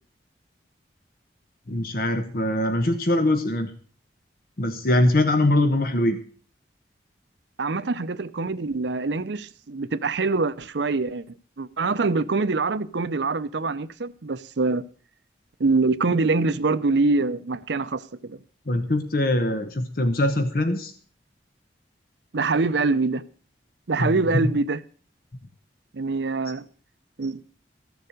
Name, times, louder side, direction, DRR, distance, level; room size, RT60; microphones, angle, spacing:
voice 1, 1.7-3.7 4.6-6.2 18.7-20.9 24.0-24.5, left 1 dB, 55° left, 1.0 m, -22 dB
voice 2, 7.6-11.3 11.6-14.8 15.6-18.4 22.3-23.2 23.9-24.8 25.9-26.6 27.2-27.4, right 3 dB, 80° right, 0.6 m, -24 dB
14.0 x 7.1 x 6.5 m
head